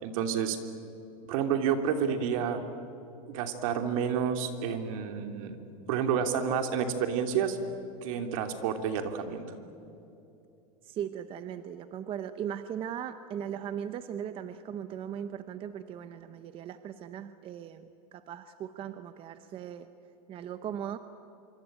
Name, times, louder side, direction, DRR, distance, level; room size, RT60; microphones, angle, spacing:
voice 1, 0.0-0.6 1.3-2.6 3.3-5.6 5.9-7.6 8.0-9.6, right 7 dB, 65° right, 6 dB, 3.0 m, -29 dB
voice 2, 10.9-19.9 20.3-21.0, right 9 dB, 30° right, 11 dB, 0.9 m, -38 dB
26.0 x 25.0 x 8.9 m, 2.8 s
supercardioid pair, 155°, 18 cm